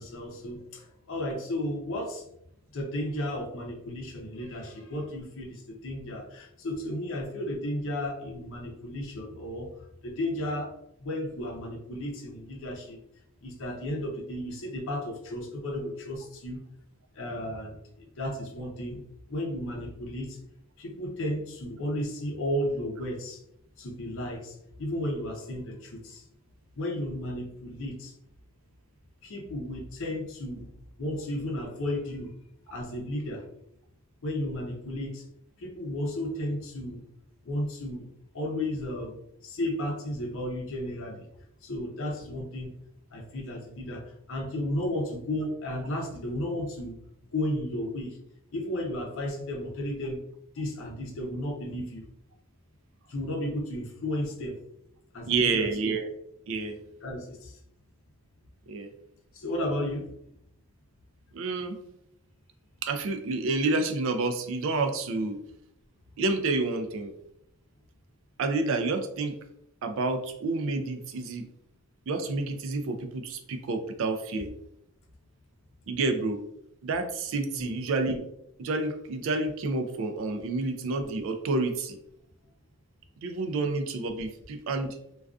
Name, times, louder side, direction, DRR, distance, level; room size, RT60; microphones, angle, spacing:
voice 1, 0.0-2.3 2.7-9.7 10.0-10.7 11.0-13.0 13.4-16.6 17.1-19.0 19.3-20.4 20.8-23.4 23.8-26.2 26.8-28.1 29.2-30.7 31.0-32.3 32.7-33.4 34.2-35.2 35.6-37.0 37.4-38.1 38.3-39.2 39.4-41.3 41.6-42.7 43.1-47.0 47.3-48.2 48.5-50.2 50.5-52.0 53.1-54.6 55.1-55.7 57.0-57.6 59.3-60.1 77.6-77.8, left 1 dB, 60° left, 0 dB, 0.5 m, -33 dB
voice 2, 55.3-56.1 56.5-56.8 58.7-58.9 61.3-61.8 62.8-65.4 66.2-67.1 68.4-69.3 69.8-71.5 72.1-74.5 75.9-76.4 76.8-78.2 78.6-82.0 83.2-85.0, right 3 dB, 60° right, 6 dB, 0.3 m, -29 dB
2.4 x 2.3 x 2.3 m, 0.77 s
head